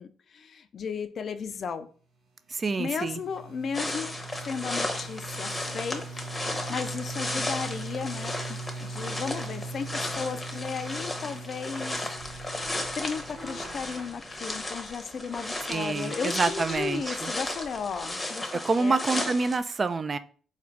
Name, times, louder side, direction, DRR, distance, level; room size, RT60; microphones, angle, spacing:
voice 1, 0.0-1.9 2.8-4.2 4.4-6.3 6.7-12.7 12.9-18.5 18.8-19.0, left 6 dB, 50° left, 9 dB, 0.4 m, -35 dB
voice 2, 2.5-3.2 15.7-17.3 18.5-20.2, right 4 dB, 35° right, 12 dB, 0.3 m, -27 dB
sound 1, 2.6-14.4, right 3 dB, 90° right, 0.9 m, -41 dB
sound 2, 3.7-19.6, left 1 dB, 15° left, 0.8 m, -35 dB
sound 3, 12.2-18.2, right 2 dB, 60° right, 1.1 m, -47 dB
4.1 x 2.4 x 4.5 m, 0.42 s
cardioid pair, 90°, 0 cm